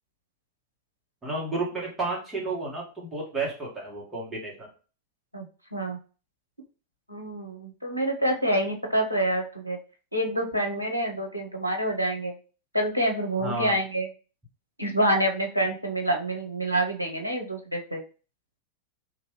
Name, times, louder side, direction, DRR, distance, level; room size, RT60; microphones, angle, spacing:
voice 1, 1.2-4.7 13.4-13.7, right 3 dB, 15° right, -4 dB, 1.4 m, -31 dB
voice 2, 7.1-9.8 10.1-12.3 12.7-14.1 14.8-18.0, right 1 dB, 90° right, 2 dB, 0.7 m, -27 dB
3.0 x 2.5 x 3.0 m, 0.36 s
figure-of-eight pair, 90°, 0 cm